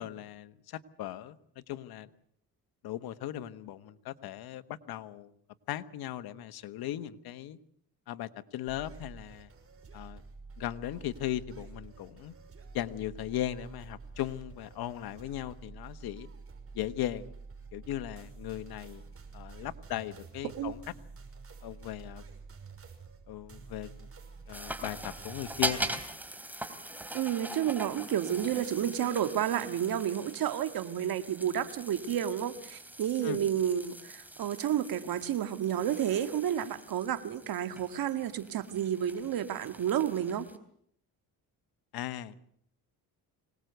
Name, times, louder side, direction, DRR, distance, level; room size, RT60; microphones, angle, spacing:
voice 1, 0.0-2.1 2.8-5.3 5.7-7.6 8.1-9.5 9.9-10.2 10.6-12.3 12.7-16.3 16.7-17.3 17.7-19.0 19.3-20.8 21.6-22.2 23.3-24.1 24.5-26.0 33.2-33.4 41.9-42.4, left 12 dB, 80° left, 13 dB, 1.3 m, -38 dB
sound 1, 8.7-25.9, right 4 dB, 40° right, 6.0 m, -49 dB
voice 2, 20.4-20.8 27.1-40.5, right 10 dB, 70° right, 9 dB, 2.0 m, -31 dB
sound 2, 24.5-40.6, right 1 dB, 5° right, 3.3 m, -41 dB
25.0 x 19.0 x 8.0 m, 0.68 s
cardioid pair, 80°, 37 cm